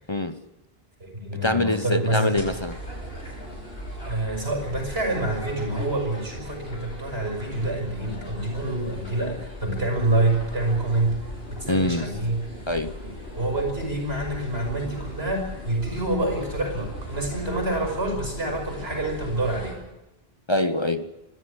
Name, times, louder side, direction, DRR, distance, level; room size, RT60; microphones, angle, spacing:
voice 1, 0.1-0.4 1.4-2.7 11.7-12.1 12.7-13.0 20.5-21.1, left 2 dB, 30° left, 1.0 m, -24 dB
voice 2, 1.0-2.5 4.1-11.2 11.5-12.4 13.0-19.8, right 2 dB, 80° right, 6.6 m, -27 dB
sound 1, 2.3-19.7, equal, 80° left, 7.0 m, -38 dB
25.0 x 13.0 x 9.9 m
omnidirectional pair, 1.0 m